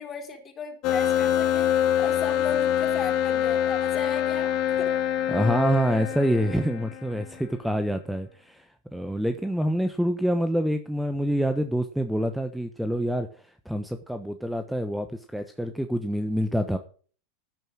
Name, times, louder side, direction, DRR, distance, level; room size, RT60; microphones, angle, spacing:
voice 1, 0.0-1.7 2.0-5.0, left 5 dB, 30° left, 5 dB, 3.9 m, -36 dB
sound 1, 0.8-7.2, left 10 dB, 50° left, 2.1 m, -25 dB
voice 2, 5.3-16.8, equal, ahead, 8 dB, 1.1 m, -26 dB
11.0 x 9.3 x 6.4 m, 0.41 s
hypercardioid pair, 100°, 0 cm